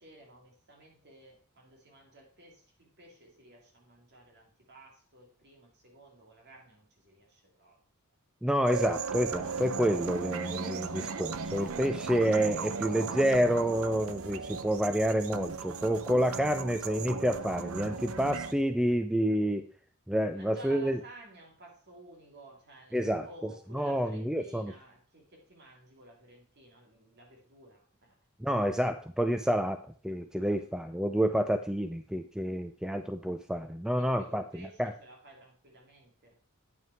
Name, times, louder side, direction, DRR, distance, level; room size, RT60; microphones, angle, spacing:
voice 1, 0.0-7.8 20.3-28.2 30.4-30.6 33.9-36.4, right 1 dB, 50° right, 0 dB, 2.6 m, -54 dB
voice 2, 8.4-19.7 20.1-21.0 22.9-24.7 28.4-34.9, equal, 5° right, 8 dB, 0.4 m, -29 dB
sound 1, 8.7-18.5, right 5 dB, 70° right, 0.6 m, -37 dB
9.1 x 5.6 x 4.6 m, 0.42 s
head